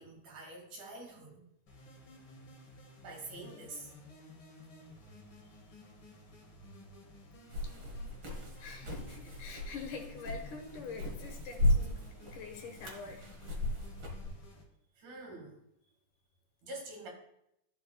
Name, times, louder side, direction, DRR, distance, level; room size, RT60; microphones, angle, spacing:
voice 1, 0.0-1.5 3.0-3.9 7.5-7.6 13.0-13.1 15.0-15.6 16.6-17.1, right 2 dB, 80° right, 1 dB, 3.4 m, -46 dB
sound 1, 1.7-14.6, left 1 dB, 45° left, 2.1 m, -54 dB
sound 2, 7.5-14.3, left 1 dB, 45° right, 1.8 m, -35 dB
voice 2, 8.6-12.0 12.3-13.3, left 4 dB, 85° left, 3 dB, 2.8 m, -45 dB
13.5 x 5.8 x 2.3 m, 0.79 s
omnidirectional pair, 3.5 m